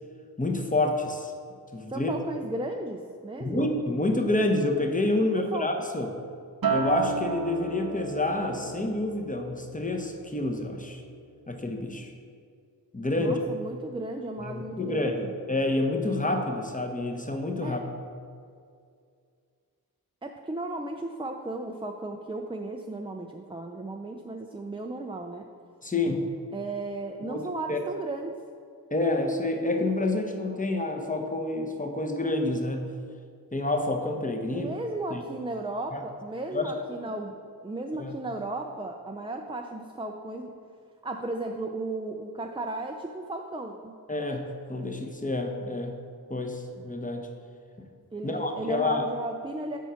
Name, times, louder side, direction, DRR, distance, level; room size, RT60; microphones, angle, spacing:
voice 1, 0.4-1.3 1.7-2.1 3.4-6.1 6.7-11.0 11.5-12.1 12.9-13.4 14.4-15.2 15.5-17.8 25.8-26.2 27.3-27.8 28.9-32.9 33.5-34.7 35.1-35.2 35.9-36.0 36.5-36.7 37.9-38.2 44.1-46.0 46.3-47.3 47.8-47.9 48.2-49.0, left 2 dB, 20° left, 3 dB, 0.8 m, -28 dB
voice 2, 1.9-3.7 5.4-5.7 13.2-15.3 17.6-17.8 20.2-25.5 26.5-28.4 34.5-37.3 37.6-40.5 41.0-43.9 48.1-49.8, right 2 dB, 15° right, 3 dB, 0.4 m, -35 dB
Acoustic guitar, 6.6-11.1 11.4-11.8, right 5 dB, 65° right, 0.6 m, -33 dB
7.2 x 4.5 x 5.6 m, 2.3 s
wide cardioid pair, 50°, 38 cm